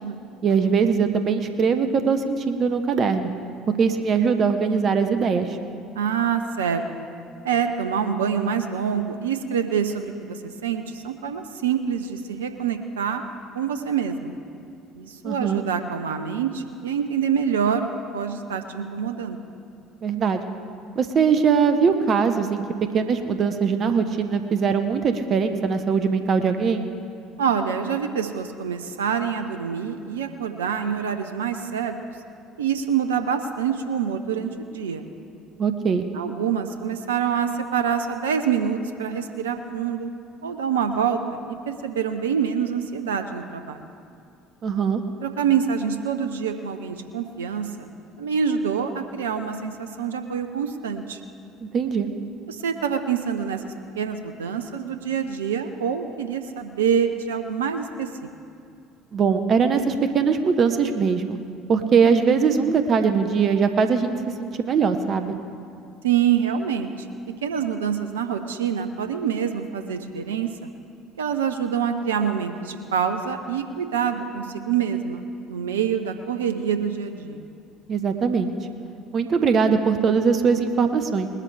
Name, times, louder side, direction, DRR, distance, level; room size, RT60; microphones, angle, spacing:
voice 1, 0.4-3.3 3.8-5.6 15.2-15.6 20.0-20.4 21.0-22.6 22.9-26.8 35.6-36.0 44.6-45.0 51.6-52.1 59.1-61.4 61.7-64.1 64.4-65.3 77.9-78.5 79.1-81.3, right 6 dB, 45° right, 8 dB, 0.8 m, -21 dB
voice 2, 6.0-7.1 7.4-13.2 13.5-14.3 15.0-19.4 27.4-31.9 32.6-35.1 36.1-40.1 40.4-43.8 45.2-47.9 48.2-51.2 52.5-58.3 66.0-67.1 67.4-70.5 71.2-77.4, right 7 dB, 80° right, 8 dB, 0.6 m, -26 dB
20.5 x 12.5 x 3.3 m, 2.5 s
hypercardioid pair, 60°, 0 cm